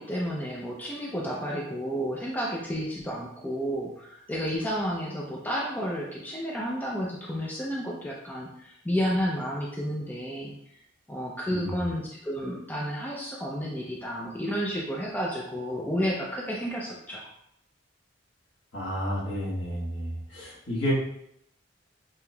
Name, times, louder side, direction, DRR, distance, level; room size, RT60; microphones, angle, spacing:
voice 1, 0.0-10.5 11.1-17.3, equal, 10° left, -3 dB, 0.4 m, -31 dB
voice 2, 18.7-20.9, equal, 65° left, -6 dB, 1.4 m, -31 dB
5.4 x 2.9 x 2.3 m, 0.75 s
head